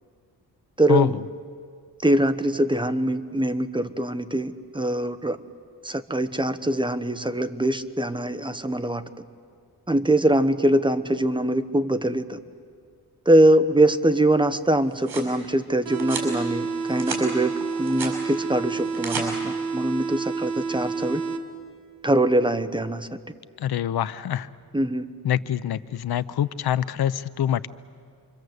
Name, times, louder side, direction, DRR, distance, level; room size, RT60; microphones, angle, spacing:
voice 1, 0.8-1.2 2.0-5.4 5.8-9.1 9.9-12.4 13.2-17.5 17.8-21.2 22.0-23.1 24.7-25.0, right 1 dB, 10° right, 10 dB, 1.2 m, -23 dB
sound 1, 14.6-15.3 16.0-16.3 16.8-17.2 17.6-18.2 18.8-19.3, right 4 dB, 75° right, 6.5 m, -33 dB
sound 2, 15.8-21.8, right 4 dB, 60° right, 2.0 m, -29 dB
voice 2, 23.6-24.5 25.2-27.7, left 10 dB, 75° left, 16 dB, 0.8 m, -25 dB
28.0 x 24.5 x 8.0 m, 2.1 s
cardioid pair, 100°, 38 cm